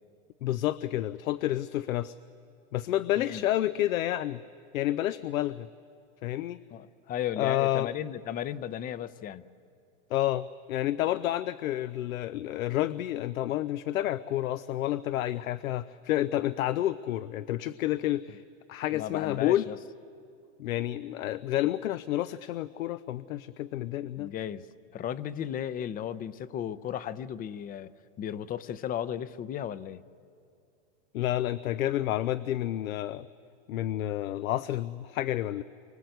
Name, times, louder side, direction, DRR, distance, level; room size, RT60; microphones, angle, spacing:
voice 1, 0.4-2.2 2.7-4.4 4.7-5.7 6.2-6.6 7.4-7.9 10.1-18.4 18.7-19.7 20.6-24.3 31.1-33.3 33.7-35.6, left 13 dB, 90° left, 14 dB, 0.7 m, -29 dB
voice 2, 6.7-9.5 18.9-19.8 24.2-24.7 24.9-27.9 28.2-30.0, left 10 dB, 20° left, 15 dB, 0.6 m, -35 dB
30.0 x 24.5 x 7.9 m, 2.5 s
supercardioid pair, 135°, 40 cm